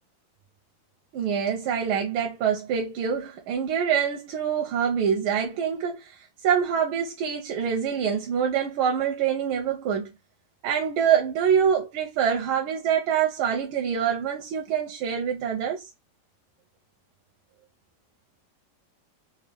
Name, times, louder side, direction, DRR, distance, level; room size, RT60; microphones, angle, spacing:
voice 1, 1.1-6.1 6.4-10.1 10.6-15.9, right 8 dB, 90° right, 1.6 m, -25 dB
4.1 x 2.3 x 3.2 m
omnidirectional pair, 2.3 m